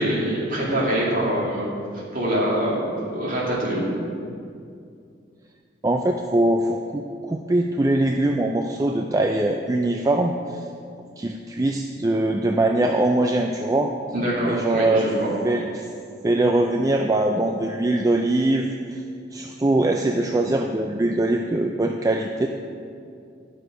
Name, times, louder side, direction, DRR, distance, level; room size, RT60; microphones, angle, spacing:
voice 1, 0.0-1.7 2.1-3.9 14.1-15.3, right 1 dB, 45° right, -6 dB, 2.6 m, -24 dB
voice 2, 5.8-10.6 11.2-13.9 14.4-15.1 15.4-15.9 16.2-19.0 19.3-22.5, right 2 dB, 20° right, 2 dB, 0.3 m, -22 dB
11.0 x 6.3 x 5.2 m, 2.4 s
head